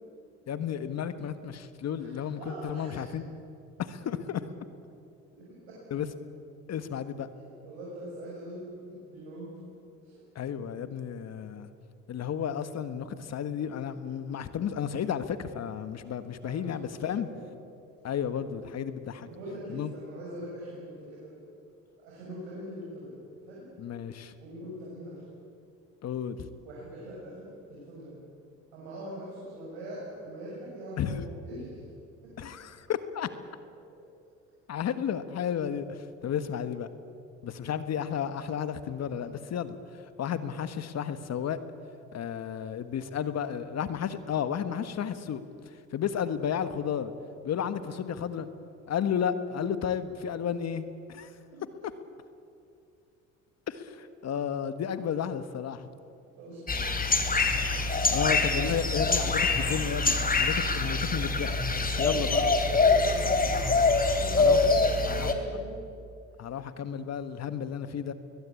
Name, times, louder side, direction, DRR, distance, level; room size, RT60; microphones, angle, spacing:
voice 1, 0.5-3.3 3.8-4.4 5.9-6.1 6.7-7.3 10.3-11.7 12.1-17.3 18.0-19.3 19.7-19.9 23.8-24.3 26.0-26.4 31.0-31.2 32.4-33.3 34.7-36.9 37.4-39.8 40.2-41.6 42.1-45.4 45.9-47.1 47.4-48.5 48.9-51.3 53.7-55.9 58.1-62.5 64.3-64.7 65.1-65.3 66.4-68.1, left 8 dB, 50° left, 11 dB, 1.6 m, -32 dB
voice 2, 1.9-3.1 5.5-5.8 7.6-9.5 10.0-10.2 16.4-17.5 19.2-21.5 22.0-23.6 24.4-25.2 26.6-28.2 28.7-31.8 32.2-32.5 37.5-37.7 56.4-56.8 58.2-58.3 59.2-60.1 61.8-63.8 64.1-65.8, right 1 dB, 85° right, -5 dB, 6.8 m, -42 dB
sound 1, 56.7-65.3, left 3 dB, 25° left, 3.0 m, -25 dB
21.5 x 20.5 x 8.6 m, 2.5 s
hypercardioid pair, 70°, 33 cm